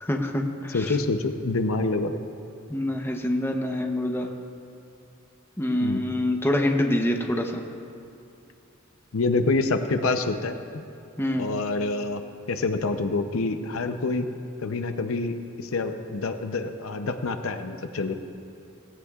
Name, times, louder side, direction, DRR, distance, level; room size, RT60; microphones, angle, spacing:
voice 1, 0.0-0.9 2.7-4.3 5.6-7.6 11.2-11.5, left 1 dB, 10° left, 2 dB, 0.8 m, -26 dB
voice 2, 0.7-2.2 5.8-6.0 9.1-10.8 11.4-12.2 12.5-14.3 14.6-18.1, left 3 dB, 75° left, 7 dB, 0.7 m, -27 dB
18.0 x 16.0 x 2.4 m, 2.6 s
head